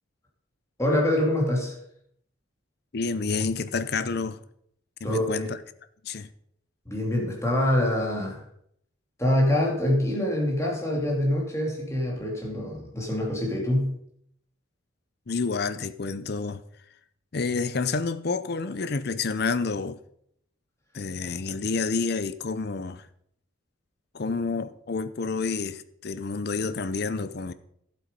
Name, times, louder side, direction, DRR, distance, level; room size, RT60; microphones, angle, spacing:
voice 1, 0.8-1.7 5.0-5.5 6.9-8.4 9.2-13.9, left 1 dB, 15° left, 2.5 m, -25 dB
voice 2, 2.9-4.4 5.0-5.6 6.0-6.3 15.3-16.6 17.3-20.0 20.9-23.0 24.1-27.5, left 4 dB, 50° left, 0.6 m, -29 dB
11.5 x 7.8 x 5.2 m
head